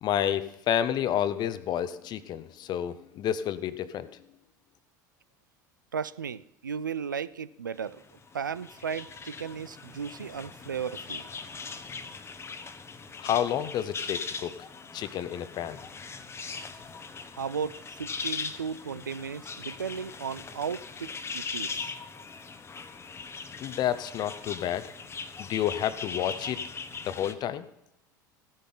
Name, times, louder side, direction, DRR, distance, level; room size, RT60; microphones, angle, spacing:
voice 1, 0.0-4.1 13.2-14.5 14.9-15.8 23.6-24.9 25.4-26.6 27.0-27.7, left 10 dB, 45° left, 14 dB, 0.8 m, -30 dB
voice 2, 5.9-8.0 8.3-11.3 17.4-21.9, right 6 dB, 90° right, 17 dB, 0.4 m, -35 dB
sound 1, 7.8-27.3, left 5 dB, 25° left, 1.0 m, -40 dB
15.5 x 9.6 x 3.9 m, 0.82 s
figure-of-eight pair, 70°, 10 cm